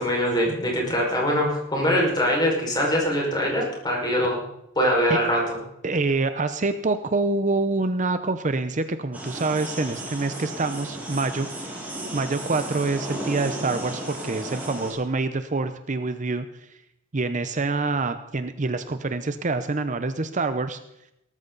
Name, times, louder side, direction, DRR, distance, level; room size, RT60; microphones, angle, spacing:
voice 1, 0.0-4.4 4.8-5.6, equal, 20° left, -2 dB, 5.3 m, -23 dB
voice 2, 5.8-11.8 12.1-16.8 17.1-20.8, right 3 dB, 40° right, 10 dB, 0.7 m, -26 dB
sound 1, 9.1-14.9, right 1 dB, 10° right, 5.3 m, -34 dB
18.5 x 13.5 x 4.0 m, 0.81 s
head